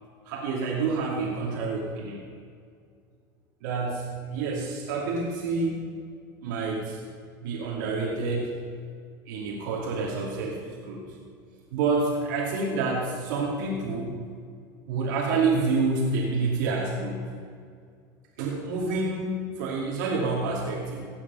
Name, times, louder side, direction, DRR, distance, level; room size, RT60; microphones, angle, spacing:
voice 1, 0.2-2.2 3.6-5.8 6.4-7.0 7.4-8.5 9.3-11.1 11.7-14.2 14.9-17.3 18.4-21.1, right 3 dB, 85° right, -2 dB, 2.5 m, -28 dB
16.5 x 8.7 x 5.6 m, 2.2 s
supercardioid pair, 135°, 10 cm